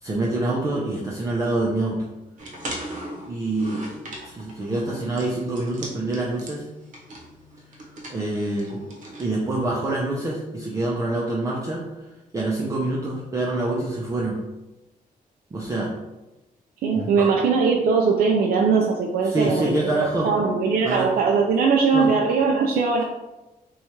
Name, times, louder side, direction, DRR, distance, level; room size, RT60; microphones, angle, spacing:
voice 1, 0.0-2.1 3.3-3.9 4.2-6.6 8.1-8.8 9.2-11.8 12.3-14.4 15.5-15.9 16.9-17.3 19.2-20.3 20.8-21.1 21.9-22.1, right 2 dB, 20° right, -4 dB, 0.4 m, -26 dB
sound 1, 2.4-9.2, right 1 dB, 60° right, 0.9 m, -39 dB
voice 2, 16.8-23.0, right 5 dB, 85° right, 0 dB, 0.4 m, -20 dB
2.9 x 2.3 x 4.2 m, 1.0 s
wide cardioid pair, 165°, 15 cm